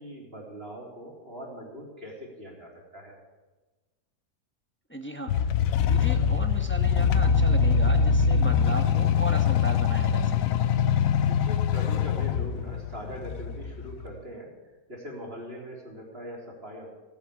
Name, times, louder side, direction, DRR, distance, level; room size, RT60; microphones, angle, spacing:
voice 1, 0.0-3.2 11.3-16.9, equal, 35° right, -2 dB, 3.9 m, -41 dB
voice 2, 4.9-5.3 5.9-10.3, right 1 dB, 10° left, 5 dB, 1.1 m, -36 dB
sound 1, 5.3-14.2, left 7 dB, 65° left, 1.0 m, -23 dB
17.0 x 9.5 x 8.5 m, 1.2 s
omnidirectional pair, 1.8 m